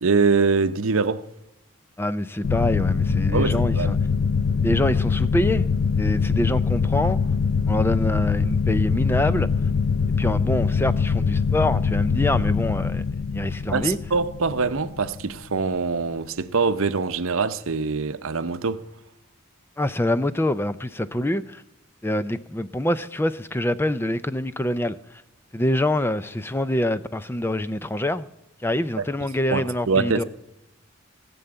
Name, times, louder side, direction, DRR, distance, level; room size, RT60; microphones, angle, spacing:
voice 1, 0.0-1.2 3.3-3.9 13.7-18.8 29.0-29.1 29.5-30.2, right 4 dB, 75° right, 0.8 m, -23 dB
voice 2, 2.0-4.0 4.6-5.7 6.0-7.2 7.7-9.5 10.2-13.0 13.3-14.0 19.8-21.6 22.0-25.2 25.5-28.3 28.6-30.2, left 1 dB, 10° left, 0.4 m, -25 dB
sound 1, 2.4-15.7, left 5 dB, 80° left, 0.4 m, -23 dB
18.0 x 7.0 x 8.7 m
head